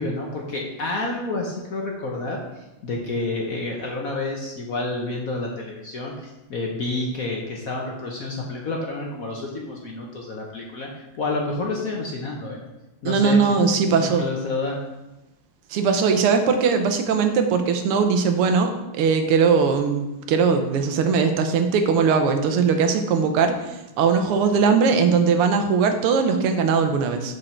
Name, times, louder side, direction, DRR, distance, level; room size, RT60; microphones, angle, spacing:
voice 1, 0.0-12.6 13.0-14.8, left 2 dB, 55° left, 0 dB, 1.0 m, -29 dB
voice 2, 13.0-14.3 15.7-27.4, right 5 dB, 85° right, 6 dB, 1.8 m, -20 dB
6.7 x 6.4 x 4.4 m, 1.0 s
omnidirectional pair, 2.4 m